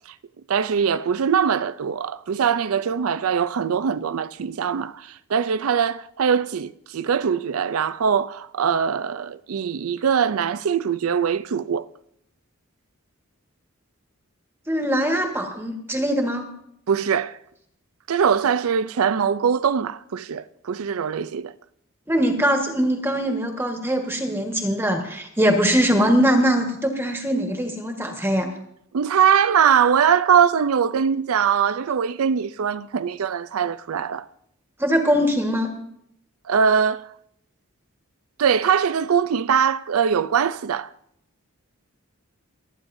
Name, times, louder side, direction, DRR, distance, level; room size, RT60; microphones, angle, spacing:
voice 1, 0.5-11.9 16.9-17.4 18.1-21.5 28.9-34.3 36.5-37.1 38.4-40.9, right 7 dB, 80° right, 0.5 m, -22 dB
voice 2, 14.7-16.5 22.1-28.5 34.8-35.7, equal, 10° right, 1.4 m, -22 dB
28.5 x 9.7 x 2.6 m
head